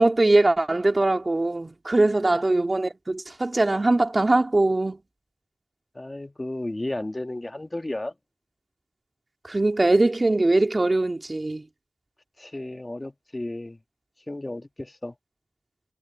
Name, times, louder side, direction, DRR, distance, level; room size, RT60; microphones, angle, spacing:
voice 1, 0.0-5.0 9.4-11.6, right 2 dB, 40° right, 2.5 m, -21 dB
voice 2, 5.9-8.1 12.4-13.8 14.3-15.1, left 1 dB, 30° left, 1.5 m, -33 dB
wide cardioid pair, 50°, 0 cm